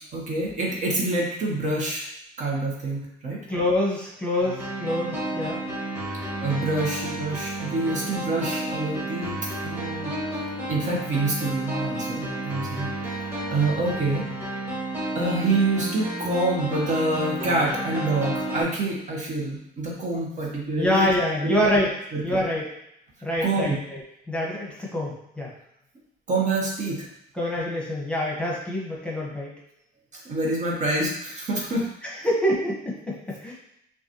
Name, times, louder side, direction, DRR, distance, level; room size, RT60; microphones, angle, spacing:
voice 1, 0.1-2.0 2.4-3.4 6.4-10.4 10.7-14.5 15.1-21.1 21.4-21.6 22.1-22.4 23.4-23.8 26.3-27.1 30.1-31.9, right 2 dB, 45° right, -2 dB, 1.1 m, -27 dB
voice 2, 3.5-5.6 20.8-22.0 22.2-22.6 23.2-24.0 24.3-25.5 27.3-29.5 32.0-33.5, left 1 dB, 5° left, -4 dB, 1.1 m, -26 dB
sound 1, 4.4-18.6, right 1 dB, 10° right, 1.5 m, -31 dB
5.5 x 2.4 x 2.9 m, 0.79 s
cardioid pair, 110°, 17 cm